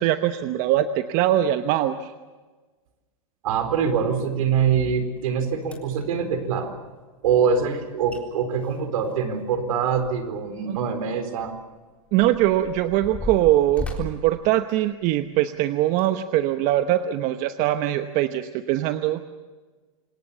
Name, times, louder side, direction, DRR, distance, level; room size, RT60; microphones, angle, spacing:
voice 1, 0.0-2.1 10.7-10.8 12.1-19.2, right 13 dB, 45° right, 9 dB, 1.0 m, -22 dB
voice 2, 3.4-6.7 7.2-11.6, right 6 dB, 75° right, 8 dB, 4.4 m, -24 dB
sound 1, 5.2-5.3 5.6-6.1 7.8-7.9 8.1-8.2 8.6-10.4 10.7-10.8 11.5-15.3 15.9-16.1 16.7-16.8, left 2 dB, 5° left, 3.9 m, -37 dB
27.5 x 19.5 x 7.0 m, 1.3 s
hypercardioid pair, 125°, 18 cm